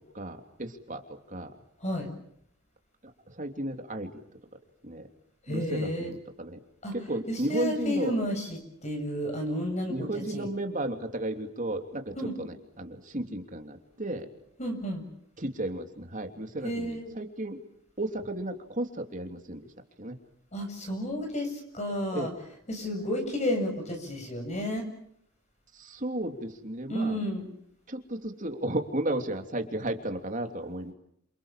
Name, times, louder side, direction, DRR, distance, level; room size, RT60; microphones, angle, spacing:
voice 1, 0.0-1.5 3.3-4.1 4.8-5.1 5.5-6.6 6.9-8.2 9.9-14.3 15.4-17.6 18.0-19.7 20.0-20.1 22.1-22.3 25.7-27.3 27.9-30.9, right 1 dB, 40° right, 5 dB, 3.1 m, -34 dB
voice 2, 5.4-6.1 6.8-6.9 7.3-10.5 12.1-12.3 14.6-15.0 16.6-17.2 20.5-22.3 22.7-24.8 26.9-27.5, equal, 35° left, 4 dB, 7.5 m, -31 dB
29.0 x 27.0 x 7.6 m, 0.73 s
head